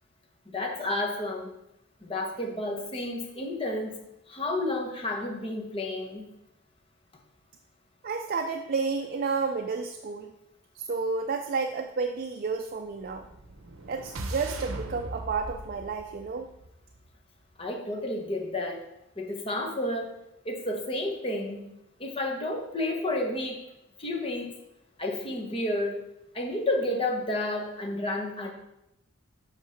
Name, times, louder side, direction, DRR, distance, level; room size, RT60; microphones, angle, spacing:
voice 1, 0.5-1.5 2.0-4.0 4.3-6.3 17.6-18.8 19.2-20.1 20.4-21.6 22.0-23.6 24.0-24.5 25.0-25.9 26.3-28.5, left 1 dB, 25° left, 1 dB, 1.0 m, -31 dB
voice 2, 8.0-10.3 10.8-13.2 13.9-16.5, right 4 dB, 45° right, 4 dB, 0.4 m, -31 dB
sound 1, 13.0-17.2, right 2 dB, 70° right, 0.7 m, -40 dB
8.0 x 3.7 x 5.7 m, 0.86 s
head